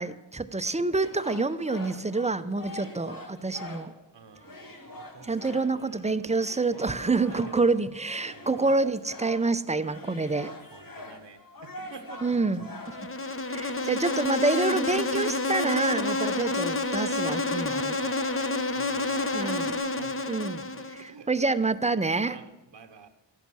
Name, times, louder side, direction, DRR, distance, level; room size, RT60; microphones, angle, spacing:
voice 1, 0.0-3.9 5.2-10.5 12.2-12.7 13.0-13.1 13.5-18.0 19.3-19.7 20.3-22.4, right 3 dB, 15° right, 13 dB, 0.6 m, -27 dB
sound 1, 1.0-4.0 4.4-16.8 17.1-19.7, left 2 dB, 50° left, 2.1 m, -45 dB
voice 2, 4.1-5.6 6.7-7.8 8.3-8.6 10.7-12.3 13.8-13.9 16.3-16.6 18.0-19.6 19.9-20.2 20.7-21.3 22.2-23.1, right 5 dB, 80° right, 6 dB, 1.1 m, -49 dB
Insect, 12.9-21.1, left 2 dB, 30° left, 0.9 m, -29 dB
14.0 x 11.0 x 6.2 m, 1.0 s
wide cardioid pair, 95°, 43 cm